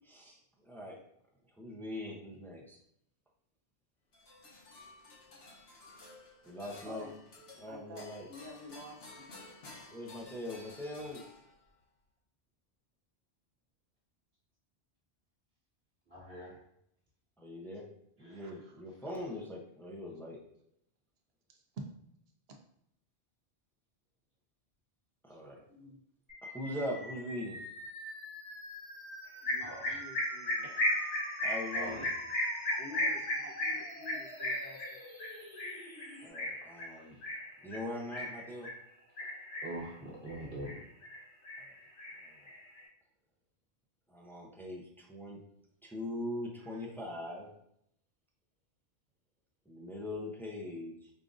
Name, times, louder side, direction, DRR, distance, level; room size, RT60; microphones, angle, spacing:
voice 1, 0.1-1.0 1.6-2.8 6.4-7.1 7.6-8.3 9.9-11.2 17.4-17.9 18.2-20.4 25.2-25.6 26.5-27.6 31.4-32.0 32.9-33.1 36.2-37.2 37.6-38.7 42.2-42.3 44.1-45.4 45.8-47.5 49.7-51.1, left 1 dB, 5° left, -2 dB, 0.3 m, -41 dB
sound 1, 4.1-11.8, left 2 dB, 65° left, 1.0 m, -53 dB
voice 2, 7.7-9.3 18.3-18.8 21.5-21.6 25.7-26.0 29.4-30.7 31.9-32.0 32.8-35.0 46.6-46.9, left 1 dB, 65° right, 2 dB, 0.8 m, -50 dB
voice 3, 16.1-16.6 18.2-18.3 29.6-30.0 30.6-31.1 31.7-32.1 39.6-40.8, right 1 dB, 45° right, -8 dB, 1.5 m, -44 dB
sound 2, 26.3-36.3, left 1 dB, 25° left, 1.1 m, -48 dB
sound 3, 29.5-38.8 39.2-39.9 40.3-41.2 41.4-42.8, left 1 dB, 85° left, 1.1 m, -35 dB
5.1 x 2.5 x 2.5 m, 0.73 s
omnidirectional pair, 1.2 m